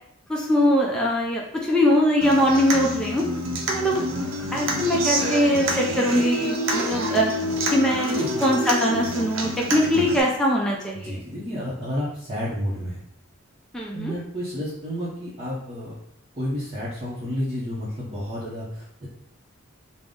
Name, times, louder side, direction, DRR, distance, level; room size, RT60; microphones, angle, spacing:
voice 1, 0.3-3.2 3.7-4.0 4.5-7.3 7.7-8.1 8.4-11.1 13.7-14.1, left 1 dB, 5° left, -3 dB, 0.4 m, -22 dB
Human voice / Acoustic guitar, 2.2-10.2, right 1 dB, 70° right, 0.6 m, -27 dB
voice 2, 8.0-8.5 9.9-10.0 10.9-13.0 13.9-16.0 16.3-19.1, equal, 30° right, -8 dB, 0.7 m, -31 dB
3.7 x 2.0 x 3.5 m, 0.75 s
head